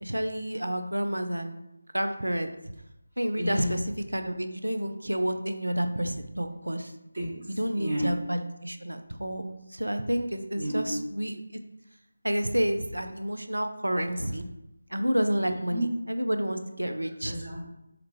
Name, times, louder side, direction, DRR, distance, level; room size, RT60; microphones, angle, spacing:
voice 1, 0.0-1.6 1.9-2.5 3.2-6.9 7.6-9.5 9.7-11.4 12.2-14.5 14.9-17.3, equal, 80° right, 7 dB, 0.4 m, -29 dB
voice 2, 3.4-3.8 7.1-8.1 10.6-10.9 15.4-15.9 17.2-17.6, equal, 50° right, -5 dB, 1.2 m, -32 dB
4.7 x 2.2 x 3.1 m, 0.87 s
figure-of-eight pair, 160°, 0 cm